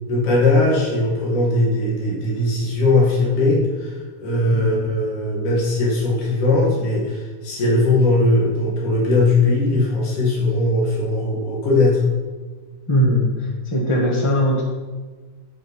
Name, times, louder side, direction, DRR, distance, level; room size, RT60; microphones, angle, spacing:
voice 1, 0.1-12.0, left 2 dB, 85° left, -5 dB, 3.6 m, -19 dB
voice 2, 12.9-14.6, equal, 10° left, -2 dB, 1.5 m, -20 dB
12.5 x 5.8 x 4.7 m, 1.4 s
omnidirectional pair, 3.5 m